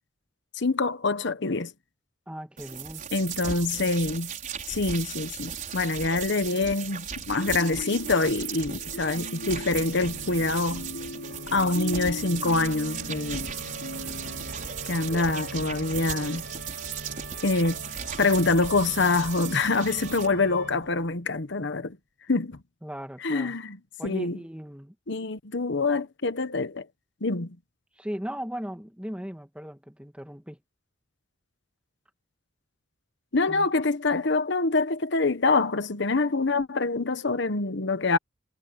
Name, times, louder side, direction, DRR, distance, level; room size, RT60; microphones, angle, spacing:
voice 1, 0.5-1.7 3.1-4.3 4.7-10.9 11.5-13.5 14.9-16.4 17.4-17.8 18.2-22.0 22.3-22.6 23.2-23.8 24.0-24.4 25.1-26.9 27.2-27.6 33.3-38.2, left 3 dB, 65° left, 1.1 m, -25 dB
voice 2, 2.3-3.1 15.1-15.4 22.8-23.6 24.0-24.9 28.0-30.6 33.5-33.7, equal, 5° right, 2.2 m, -37 dB
sound 1, 2.6-20.3, right 7 dB, 40° right, 5.3 m, -37 dB
sound 2, 7.3-14.5, left 1 dB, 90° left, 4.9 m, -39 dB
Organ, 9.3-21.1, right 2 dB, 65° right, 6.0 m, -43 dB
head